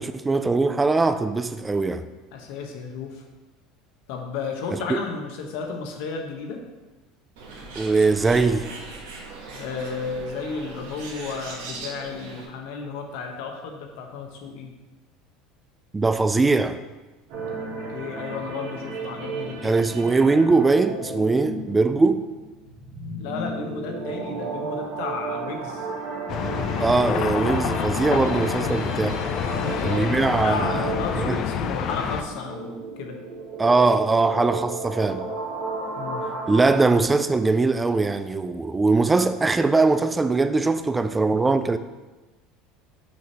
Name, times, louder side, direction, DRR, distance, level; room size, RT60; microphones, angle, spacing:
voice 1, 0.0-2.1 4.9-5.0 7.8-8.7 15.9-16.8 19.6-22.2 26.8-29.2 29.8-31.4 33.6-35.2 36.5-41.8, right 3 dB, 15° right, 0.3 m, -21 dB
voice 2, 2.3-3.2 4.1-6.6 9.5-14.7 17.9-19.8 23.2-25.9 29.3-33.2 36.0-36.2 36.5-36.6, left 5 dB, 75° left, 1.0 m, -33 dB
Bird, 7.4-12.4, right 3 dB, 85° right, 1.3 m, -39 dB
sound 1, 17.3-36.6, right 3 dB, 65° right, 1.5 m, -33 dB
sound 2, 26.3-32.2, left 8 dB, 50° left, 0.4 m, -27 dB
6.4 x 2.7 x 5.4 m
supercardioid pair, 100°, 0 cm